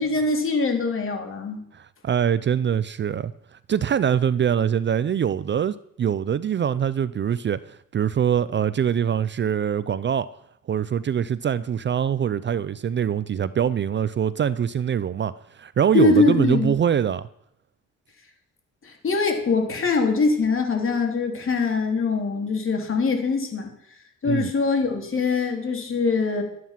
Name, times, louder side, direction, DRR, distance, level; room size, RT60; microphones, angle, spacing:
voice 1, 0.0-1.6 15.9-16.7 18.8-23.7 24.2-26.4, left 4 dB, 45° left, 3.2 m, -23 dB
voice 2, 1.7-3.3 3.7-10.3 10.7-17.2 24.2-24.5, right 8 dB, 40° right, 0.5 m, -23 dB
12.5 x 9.5 x 5.8 m
cardioid pair, 90°, 30 cm